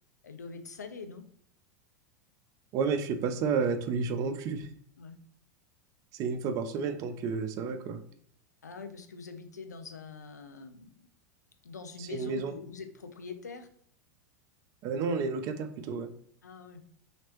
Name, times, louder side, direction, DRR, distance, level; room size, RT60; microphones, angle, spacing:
voice 1, 0.2-1.3 5.0-5.2 8.6-11.1 11.6-13.7 16.4-16.8, left 5 dB, 75° left, 8 dB, 0.4 m, -44 dB
voice 2, 2.7-4.7 6.1-8.0 12.0-12.5 14.8-16.1, right 5 dB, 35° right, 9 dB, 0.4 m, -31 dB
3.0 x 2.8 x 2.9 m, 0.62 s
figure-of-eight pair, 85°, 9 cm